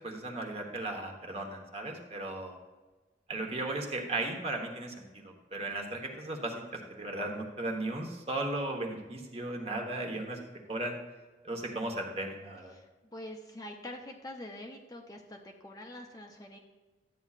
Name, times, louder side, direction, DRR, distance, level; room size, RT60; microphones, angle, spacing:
voice 1, 0.0-2.6 3.3-10.4 10.7-11.0 11.4-12.8, right 2 dB, 35° right, 2 dB, 1.2 m, -36 dB
voice 2, 12.7-16.6, left 1 dB, 20° left, 1 dB, 0.6 m, -45 dB
12.5 x 8.4 x 2.4 m, 1.2 s
head